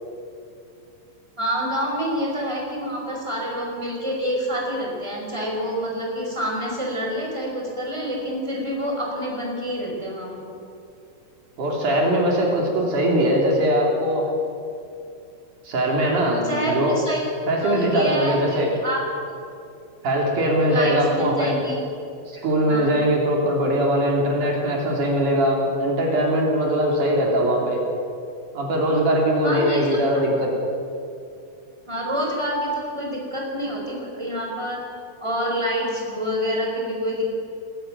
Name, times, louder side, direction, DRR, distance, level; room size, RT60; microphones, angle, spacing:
voice 1, 1.4-10.5 16.4-17.2 17.6-19.0 20.6-21.8 22.3-23.0 29.4-30.2 31.9-34.8 35.2-37.3, equal, 10° right, -1 dB, 4.9 m, -27 dB
voice 2, 11.6-14.3 15.6-17.0 17.5-18.7 20.0-21.5 22.3-27.8 28.5-30.5, right 1 dB, 60° right, -1 dB, 4.7 m, -21 dB
21.5 x 13.0 x 9.3 m, 2.5 s
omnidirectional pair, 4.1 m